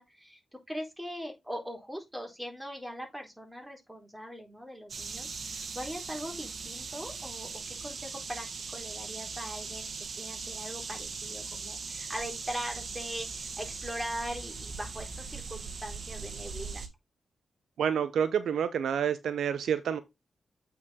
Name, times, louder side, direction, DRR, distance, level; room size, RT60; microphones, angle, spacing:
voice 1, 0.0-8.5 8.7-16.8, equal, 10° right, 3.9 m, -41 dB
sound 1, 4.9-16.9, right 4 dB, 60° right, 1.4 m, -40 dB
voice 2, 17.8-20.0, right 8 dB, 80° right, 0.7 m, -28 dB
8.3 x 4.7 x 3.7 m
supercardioid pair, 45°, 0 cm